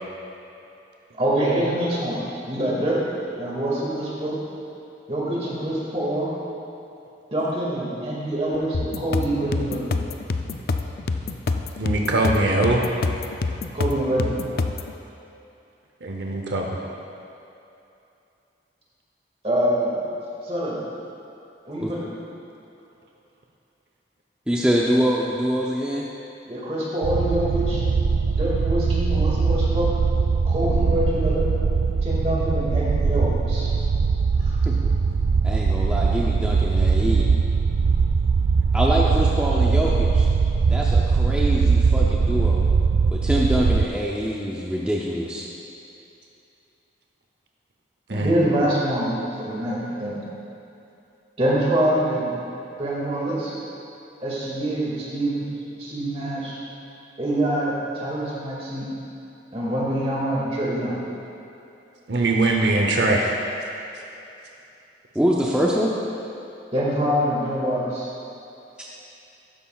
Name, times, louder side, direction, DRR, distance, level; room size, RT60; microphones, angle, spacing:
voice 1, 1.1-2.2 2.5-3.0 3.4-4.4 5.1-6.3 7.3-9.9 13.7-14.3 19.4-20.0 20.4-20.8 21.7-22.1 26.5-27.8 28.4-29.9 30.5-31.5 32.0-33.7 34.4-34.6 48.1-50.1 51.4-52.3 52.8-53.6 54.2-55.5 55.8-56.6 57.2-58.9 59.5-61.0 66.7-68.1, right 1 dB, 35° right, -5 dB, 2.0 m, -25 dB
sound 1, 8.7-14.9, left 3 dB, 55° left, 0.4 m, -27 dB
voice 2, 11.8-12.8 16.0-16.8 48.1-48.3 62.1-63.3, right 2 dB, 70° right, 0 dB, 0.8 m, -21 dB
voice 3, 24.5-26.1 34.7-34.9 35.4-37.2 38.7-40.3 40.7-42.7 43.1-45.5 65.1-65.9, equal, 5° right, -4 dB, 0.5 m, -24 dB
sound 2, 27.0-43.9, right 5 dB, 90° right, 0.4 m, -21 dB
13.0 x 10.0 x 2.4 m, 2.8 s
head